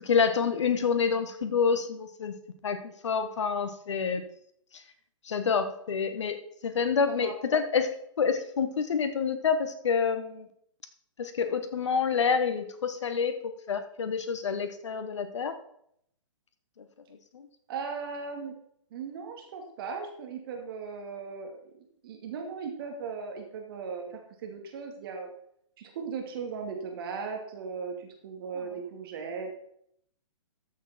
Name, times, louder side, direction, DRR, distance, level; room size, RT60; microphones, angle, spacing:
voice 1, 0.0-2.3 2.6-4.3 5.2-7.9 8.2-10.5 11.2-13.4 13.7-15.6 16.8-16.9 17.3-17.5, left 6 dB, 60° left, 9 dB, 1.5 m, -28 dB
voice 2, 17.7-18.5 18.9-25.3 25.8-29.5, right 5 dB, 45° right, 3 dB, 2.5 m, -38 dB
13.5 x 6.7 x 4.4 m, 0.70 s
figure-of-eight pair, 125°, 17 cm